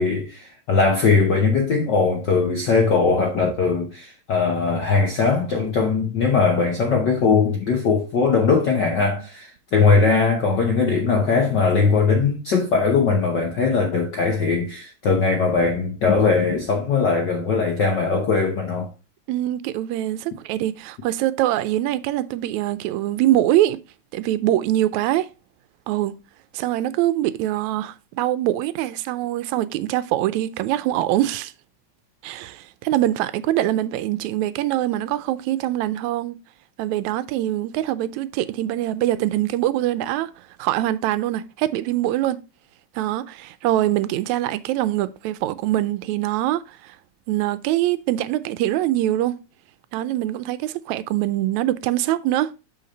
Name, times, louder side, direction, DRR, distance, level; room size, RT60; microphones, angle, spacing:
voice 1, 0.0-18.9, left 4 dB, 70° left, 1.0 m, -20 dB
voice 2, 19.3-23.8 24.1-25.3 25.9-26.1 26.5-31.5 32.2-36.4 36.8-40.3 40.6-42.4 43.0-47.0 47.3-49.4 49.9-52.5, right 14 dB, 85° right, 1.9 m, -23 dB
6.5 x 5.8 x 4.0 m
omnidirectional pair, 3.3 m